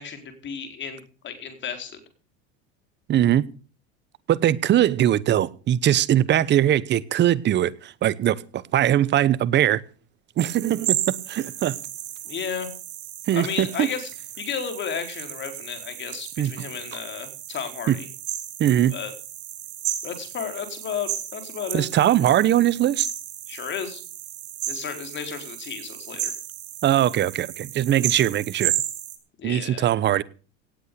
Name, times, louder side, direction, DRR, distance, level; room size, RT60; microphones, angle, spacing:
voice 1, 0.0-2.0 12.2-12.7 13.3-14.1 14.4-18.1 18.9-19.1 20.0-21.9 23.5-24.0 24.7-26.4 29.4-29.9, left 7 dB, 35° left, 4.4 m, -33 dB
voice 2, 3.1-3.5 4.3-9.8 10.4-11.8 13.3-13.9 16.4-16.5 17.9-18.0 18.6-18.9 21.7-23.1 26.8-28.7 29.4-30.2, right 12 dB, 35° right, 1.0 m, -21 dB
sound 1, 10.4-29.2, right 13 dB, 90° right, 5.4 m, -33 dB
18.0 x 8.4 x 7.0 m
supercardioid pair, 125°, 32 cm